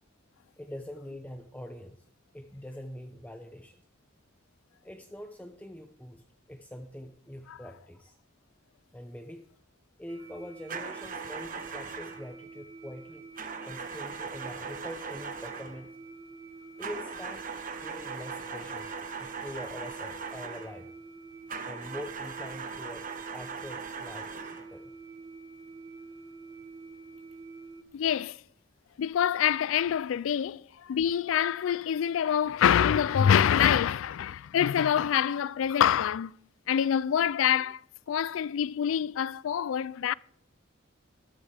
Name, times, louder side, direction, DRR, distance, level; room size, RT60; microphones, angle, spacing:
voice 1, 0.6-2.0 2.3-3.8 4.8-8.2 8.9-9.4 10.0-13.2 13.6-16.0 16.8-17.4 17.8-18.9 19.2-20.9 21.7-24.9, left 1 dB, 10° left, 0.7 m, -44 dB
sound 1, 10.1-27.8, right 3 dB, 20° right, 0.9 m, -48 dB
sound 2, 10.7-12.3 13.4-15.8 16.8-20.8 21.5-24.7, right 5 dB, 45° right, 1.0 m, -39 dB
voice 2, 27.9-28.4 29.0-36.4 36.7-37.8 38.1-40.1, left 9 dB, 90° left, 0.3 m, -26 dB
13.0 x 13.0 x 3.4 m
head